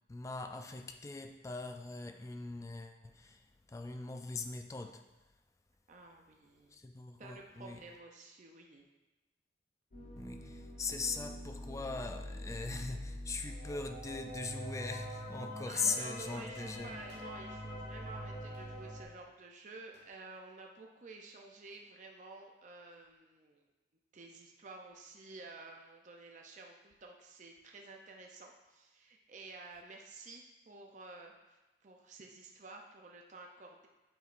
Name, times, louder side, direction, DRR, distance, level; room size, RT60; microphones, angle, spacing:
voice 1, 0.1-5.0 6.7-7.8 10.2-17.0, left 4 dB, 20° left, 5 dB, 0.3 m, -40 dB
voice 2, 5.9-6.8 7.2-8.9 15.6-23.7 24.1-33.9, right 3 dB, 45° right, 1 dB, 0.5 m, -52 dB
sound 1, 9.9-19.0, equal, 55° left, 1.4 m, -44 dB
sound 2, 14.5-15.1 15.9-16.5 17.1-17.6 18.5-18.8 19.9-20.3 21.5-21.9, equal, 75° right, 1.3 m, -59 dB
7.9 x 4.8 x 2.5 m, 1.1 s
head